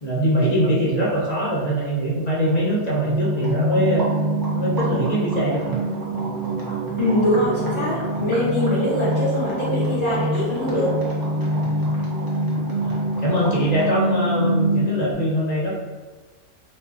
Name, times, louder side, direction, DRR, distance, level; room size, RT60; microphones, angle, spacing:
voice 1, 0.0-4.0 4.5-5.7 11.6-11.9 12.8-15.8, equal, 50° left, -5 dB, 0.5 m, -22 dB
sound 1, 2.3-14.0, right 1 dB, 30° right, 0.4 m, -36 dB
sound 2, 3.0-15.1, right 1 dB, 70° right, 0.9 m, -25 dB
voice 2, 7.0-11.0, left 1 dB, 25° left, -8 dB, 1.2 m, -22 dB
2.5 x 2.3 x 3.5 m, 1.4 s
omnidirectional pair, 1.3 m